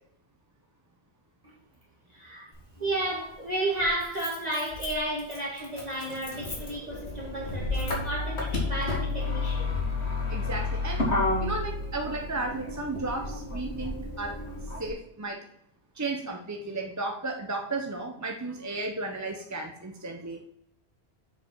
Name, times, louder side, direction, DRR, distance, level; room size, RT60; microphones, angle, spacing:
voice 1, 2.1-2.5 2.8-9.8, right 1 dB, 40° right, 1.6 m, -32 dB
Motor vehicle (road), 2.5-2.6 3.8-14.9, left 2 dB, 80° left, 2.0 m, -31 dB
voice 2, 10.3-11.1 11.4-14.4 14.8-15.5 16.0-20.4, right 2 dB, 20° right, 0.6 m, -34 dB
7.2 x 5.1 x 4.4 m
omnidirectional pair, 1.1 m